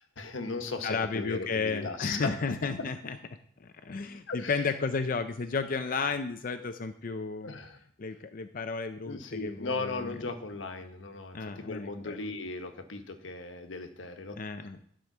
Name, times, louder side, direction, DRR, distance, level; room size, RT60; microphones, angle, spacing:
voice 1, 0.0-2.4 4.3-4.7 7.4-7.8 9.1-14.4, left 3 dB, 85° left, 6 dB, 1.2 m, -37 dB
voice 2, 0.8-3.2 3.6-7.6 8.0-10.2 11.3-12.2 14.4-14.8, left 4 dB, 45° left, 9 dB, 0.5 m, -33 dB
10.5 x 5.0 x 6.0 m, 0.64 s
head